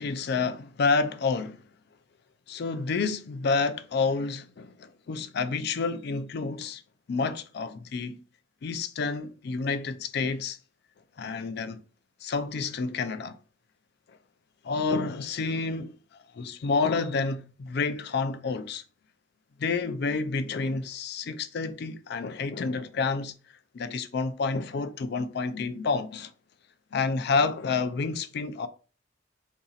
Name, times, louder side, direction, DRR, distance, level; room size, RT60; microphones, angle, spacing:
voice 1, 0.0-1.6 2.5-6.8 7.1-8.2 8.6-10.6 11.2-11.8 12.2-13.3 14.6-16.0 16.3-18.8 19.6-23.3 23.7-26.3 26.9-28.7, left 4 dB, 55° left, 0.4 m, -29 dB
2.8 x 2.7 x 4.0 m
head